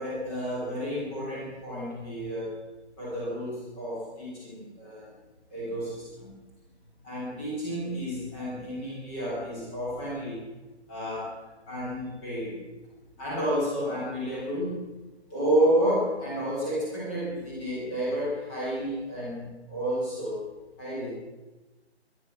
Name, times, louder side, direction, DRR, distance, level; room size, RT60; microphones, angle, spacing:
voice 1, 0.0-2.6 3.0-5.1 5.5-6.3 7.0-10.5 10.9-11.3 11.7-12.6 13.2-14.8 15.3-20.5 20.8-21.1, equal, 10° left, -7 dB, 2.9 m, -30 dB
21.5 x 9.5 x 5.9 m, 1.1 s
figure-of-eight pair, 160°, 34 cm